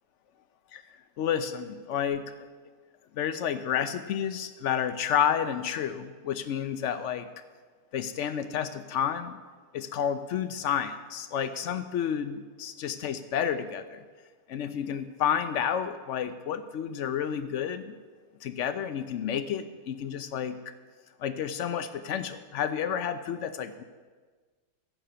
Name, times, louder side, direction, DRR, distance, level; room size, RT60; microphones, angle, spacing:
voice 1, 1.2-2.5 3.1-7.3 7.9-9.4 9.7-14.0 14.5-17.9 18.4-20.6 21.2-23.8, left 8 dB, 75° left, 11 dB, 0.7 m, -30 dB
15.0 x 5.7 x 6.6 m, 1.4 s
omnidirectional pair, 1.8 m